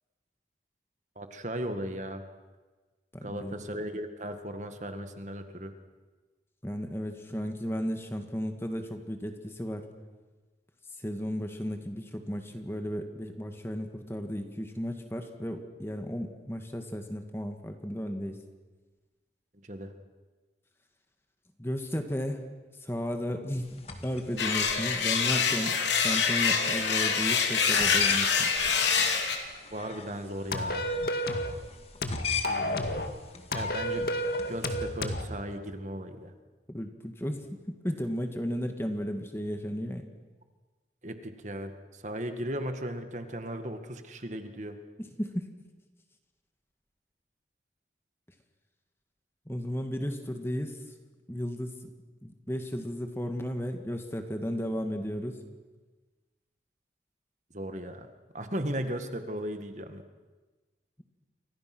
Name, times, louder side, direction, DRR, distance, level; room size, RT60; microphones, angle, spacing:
voice 1, 1.2-2.2 3.2-5.7 19.6-19.9 29.7-30.9 32.5-32.9 33.5-34.1 34.5-36.3 41.0-44.8 57.5-58.1 58.3-60.0, right 1 dB, 40° right, 7 dB, 1.9 m, -36 dB
voice 2, 3.1-3.5 6.6-9.8 11.0-18.4 21.6-22.4 22.8-25.8 26.0-28.5 36.7-40.1 45.2-45.5 49.5-50.8 51.3-51.8 52.2-55.4, equal, 15° left, 5 dB, 1.9 m, -34 dB
sound 1, 23.6-35.0, left 6 dB, 35° left, 2.1 m, -41 dB
sound 2, 24.4-29.4, left 6 dB, 80° left, 3.3 m, -26 dB
sound 3, 30.5-31.6 32.0-33.1 33.5-35.3, left 1 dB, 55° left, 2.0 m, -30 dB
29.0 x 24.5 x 6.2 m, 1.3 s
head